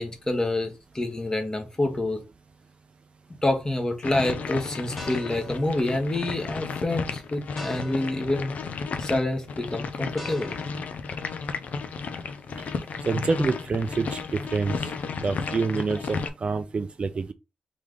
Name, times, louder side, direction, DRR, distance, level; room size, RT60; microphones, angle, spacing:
voice 1, 0.0-2.2 3.4-8.5 9.0-10.6, left 2 dB, 25° left, 1.2 m, -27 dB
sound 1, 3.3-3.8 4.3-10.7, left 1 dB, 5° left, 1.3 m, -45 dB
sound 2, 4.0-16.3, left 5 dB, 70° left, 0.6 m, -33 dB
voice 2, 13.1-14.8 15.2-17.3, right 4 dB, 45° right, 0.4 m, -27 dB
3.4 x 3.3 x 3.7 m
cardioid pair, 80°, 3 cm